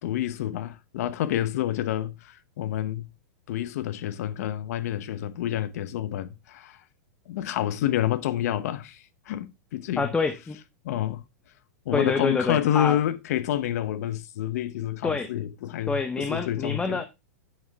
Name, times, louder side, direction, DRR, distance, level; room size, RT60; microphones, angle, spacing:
voice 1, 0.0-3.1 3.5-6.8 7.3-10.1 10.8-11.2 11.8-17.0, left 12 dB, 65° left, 1.0 m, -28 dB
voice 2, 10.0-10.6 11.9-13.0 15.0-15.3 15.9-17.1, left 4 dB, 10° left, 0.8 m, -27 dB
9.4 x 6.7 x 3.5 m
hypercardioid pair, 130°, 9 cm